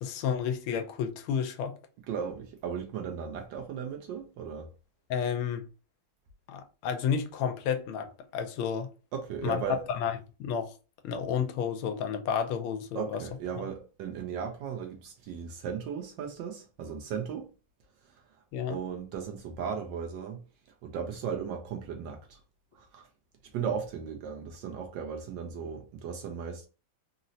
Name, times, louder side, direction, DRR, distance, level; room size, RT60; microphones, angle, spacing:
voice 1, 0.0-1.8 5.1-5.6 6.5-8.9 9.4-9.6 9.9-10.1 10.4-10.7 11.0-13.2 13.6-13.7 18.5-18.8, left 7 dB, 85° left, 1.4 m, -31 dB
voice 2, 2.1-4.7 9.1-9.8 12.9-17.5 18.0-18.4 18.7-20.4 20.8-22.4 22.7-23.1 23.5-26.7, right 7 dB, 75° right, 1.1 m, -36 dB
3.9 x 2.0 x 2.6 m
omnidirectional pair, 2.3 m